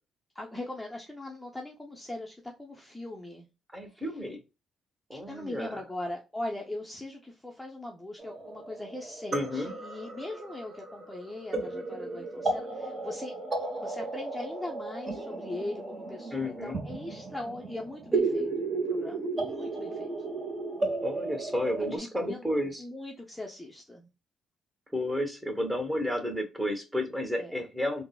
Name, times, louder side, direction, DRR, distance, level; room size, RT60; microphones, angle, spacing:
voice 1, 0.3-3.5 3.9-4.0 5.1-13.3 13.8-20.1 21.9-22.4 22.8-24.1 27.4-27.5, left 1 dB, 5° left, 0 dB, 0.6 m, -40 dB
voice 2, 3.7-4.4 5.1-5.8 9.3-9.7 16.3-16.8 21.0-22.8 24.9-28.0, left 1 dB, 10° right, 5 dB, 1.0 m, -32 dB
sound 1, 8.2-22.0, right 3 dB, 35° right, 0.9 m, -34 dB
3.6 x 2.0 x 2.2 m, 0.28 s
cardioid pair, 90°, 0 cm